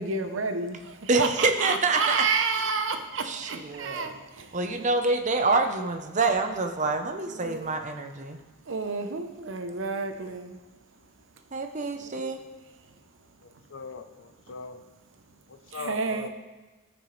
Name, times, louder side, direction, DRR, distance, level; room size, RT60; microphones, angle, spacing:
voice 1, 0.0-4.6 7.3-7.8 8.6-10.6 11.9-12.2 12.9-13.4 14.5-14.6 15.6-16.3, right 4 dB, 70° right, 7 dB, 0.8 m, -30 dB
voice 2, 1.1-2.2 3.2-4.1 4.5-8.4 11.5-12.4, right 3 dB, 35° right, 6 dB, 0.7 m, -26 dB
voice 3, 13.4-14.8 15.5-16.3, left 4 dB, 70° left, 9 dB, 0.6 m, -41 dB
14.0 x 6.2 x 3.2 m, 1.2 s
head